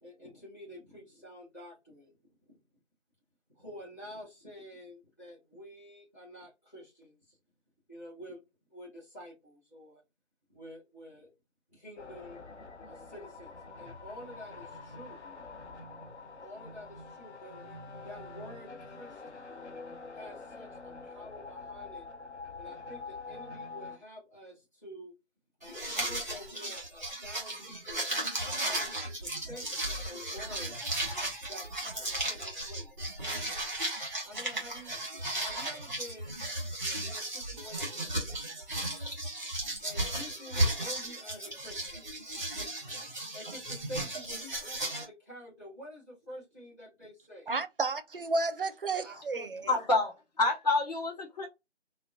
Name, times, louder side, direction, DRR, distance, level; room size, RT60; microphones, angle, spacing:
voice 1, 0.0-2.1 3.6-7.3 7.9-8.4 8.7-10.0 10.5-11.3 11.7-12.4 12.8-15.2 16.4-19.4 20.1-22.1 22.6-25.1 25.6-28.2 28.6-29.7 30.0-30.8 31.5-32.9 34.2-35.0 35.4-36.4 37.0-38.2 39.8-42.1 43.3-47.5 49.0-49.7, equal, 15° left, 0.9 m, -48 dB
sound 1, 12.0-24.0, left 3 dB, 70° left, 0.8 m, -46 dB
sound 2, 25.6-45.0, right 1 dB, 15° right, 0.8 m, -35 dB
voice 2, 47.5-49.7, right 3 dB, 50° right, 0.4 m, -32 dB
voice 3, 49.7-51.5, left 3 dB, 35° left, 0.5 m, -28 dB
3.7 x 2.1 x 2.5 m
figure-of-eight pair, 160°, 35 cm